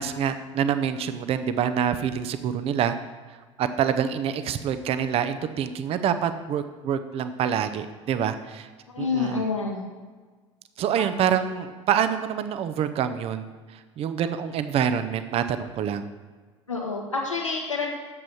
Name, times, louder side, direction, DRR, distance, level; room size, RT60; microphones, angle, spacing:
voice 1, 0.0-2.9 3.6-8.7 9.0-9.4 10.8-13.4 13.7-16.0, right 8 dB, 40° right, 10 dB, 0.8 m, -26 dB
voice 2, 8.9-9.8 16.7-17.9, left 4 dB, 85° left, -1 dB, 2.0 m, -28 dB
11.0 x 7.7 x 6.0 m, 1.4 s
figure-of-eight pair, 70°, 16 cm